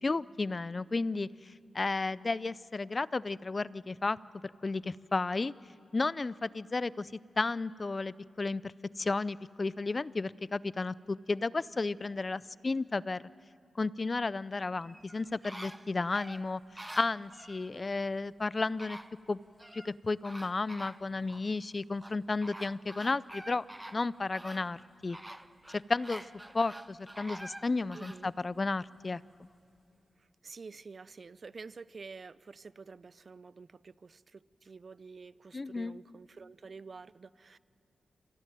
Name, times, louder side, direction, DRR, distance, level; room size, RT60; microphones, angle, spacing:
voice 1, 0.0-1.3 1.7-4.2 4.6-5.5 5.9-7.1 7.4-13.3 13.8-19.0 19.3-19.4 19.7-23.6 23.9-24.8 25.0-25.2 25.7-26.2 26.5-29.2 35.5-36.0, left 3 dB, 40° left, 19 dB, 0.5 m, -33 dB
sound 1, 14.8-17.6 18.4-18.5 18.8-19.9 20.2-21.4 22.0-28.2 28.7-28.8, right 1 dB, 15° right, 0.9 m, -47 dB
voice 2, 27.9-28.3 30.4-37.6, right 4 dB, 55° right, 18 dB, 0.5 m, -49 dB
27.0 x 16.0 x 9.1 m, 2.6 s
cardioid pair, 65°, 0 cm